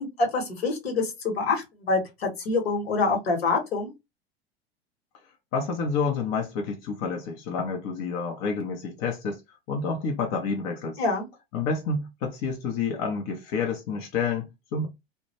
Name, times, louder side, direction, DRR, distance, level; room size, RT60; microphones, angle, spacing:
voice 1, 0.0-3.9 11.0-11.2, left 3 dB, 70° left, 1.1 m, -26 dB
voice 2, 5.5-9.4 9.7-11.0 11.5-14.9, left 4 dB, 40° left, 0.6 m, -29 dB
2.1 x 2.1 x 2.8 m
figure-of-eight pair, 85°, 32 cm